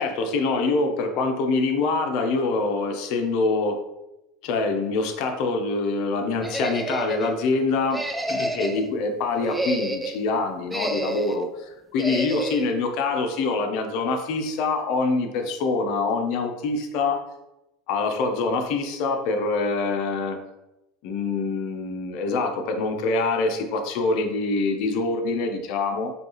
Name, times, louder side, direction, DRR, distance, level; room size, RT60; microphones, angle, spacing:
voice 1, 0.0-3.8 4.4-8.0 8.3-17.2 17.9-20.4 21.0-26.1, left 3 dB, 60° left, 5 dB, 0.6 m, -25 dB
sound 1, 6.4-7.3 7.9-8.9 9.3-10.2 10.7-11.4 12.0-12.7, right 1 dB, 5° right, 0.3 m, -29 dB
5.1 x 2.3 x 3.0 m, 0.92 s
supercardioid pair, 120°, 0 cm